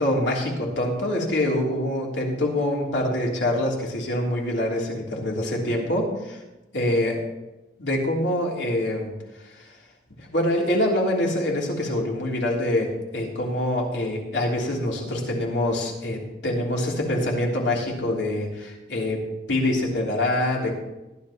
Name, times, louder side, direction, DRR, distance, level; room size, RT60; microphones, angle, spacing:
voice 1, 0.0-6.4 6.7-7.2 7.8-9.1 9.5-9.7 10.2-19.2 19.5-20.7, left 1 dB, 85° left, -2 dB, 3.4 m, -25 dB
18.5 x 11.0 x 3.1 m, 1.0 s
head